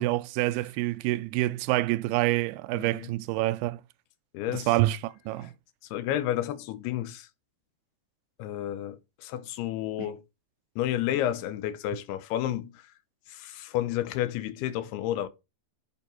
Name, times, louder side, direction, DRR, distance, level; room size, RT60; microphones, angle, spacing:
voice 1, 0.0-3.8 4.5-5.5 10.0-10.1, right 17 dB, 85° right, 2.3 m, -27 dB
voice 2, 2.7-3.1 4.3-4.7 5.4-5.5 5.9-7.3 8.4-10.2 10.8-12.9 13.3-15.3, left 12 dB, 75° left, 2.7 m, -31 dB
8.0 x 5.2 x 4.4 m
omnidirectional pair, 4.9 m